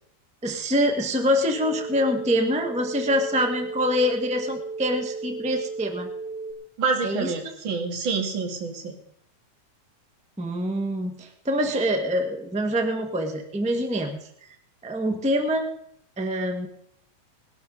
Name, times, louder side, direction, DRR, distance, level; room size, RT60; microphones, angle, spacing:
voice 1, 0.4-6.1 7.0-7.3 10.4-14.2 14.8-15.7 16.2-16.7, equal, 10° right, 4 dB, 0.4 m, -25 dB
sound 1, 1.5-6.5, right 4 dB, 80° right, 3.8 m, -35 dB
voice 2, 6.8-8.9, right 4 dB, 40° right, 3 dB, 2.6 m, -27 dB
20.5 x 12.0 x 4.0 m, 0.71 s
omnidirectional pair, 3.5 m